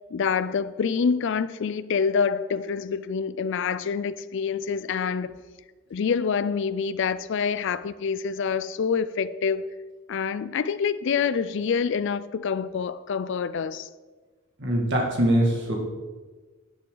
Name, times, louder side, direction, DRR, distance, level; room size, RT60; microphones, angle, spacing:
voice 1, 0.1-5.3 5.9-9.6 10.1-13.9, left 6 dB, 60° left, 0.4 m, -26 dB
voice 2, 14.6-15.8, right 1 dB, 60° right, 2.2 m, -22 dB
11.5 x 8.5 x 3.9 m
head